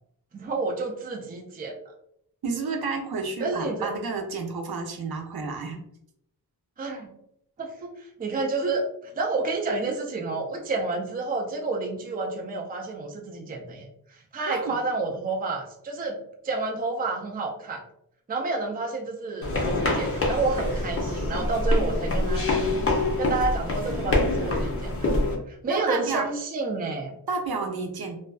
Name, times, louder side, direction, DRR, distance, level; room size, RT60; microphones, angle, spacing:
voice 1, 0.3-1.8 3.4-3.9 6.8-7.1 7.6-16.2 16.4-17.8 18.3-22.6 23.2-25.1 25.5-27.1, right 3 dB, 25° right, 1 dB, 0.4 m, -30 dB
voice 2, 2.4-5.8 14.5-14.7 25.7-26.2 27.3-28.2, right 4 dB, 70° right, 2 dB, 0.6 m, -31 dB
sound 1, 19.4-25.4, left 2 dB, 35° left, 0.6 m, -25 dB
2.5 x 2.2 x 2.3 m, 0.73 s
wide cardioid pair, 105°, 39 cm